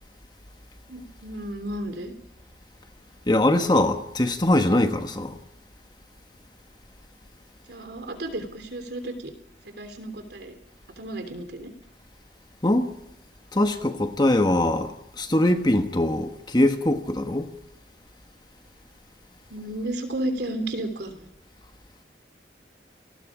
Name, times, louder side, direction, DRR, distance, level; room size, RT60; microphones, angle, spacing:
voice 1, 0.9-2.1 7.7-9.3 9.8-10.6 11.0-11.7 19.5-21.3, right 1 dB, 70° right, 3.3 m, -33 dB
voice 2, 3.3-5.4 12.6-12.9 13.5-14.9 15.2-17.5, left 1 dB, 25° left, 1.3 m, -22 dB
29.0 x 19.0 x 5.0 m
head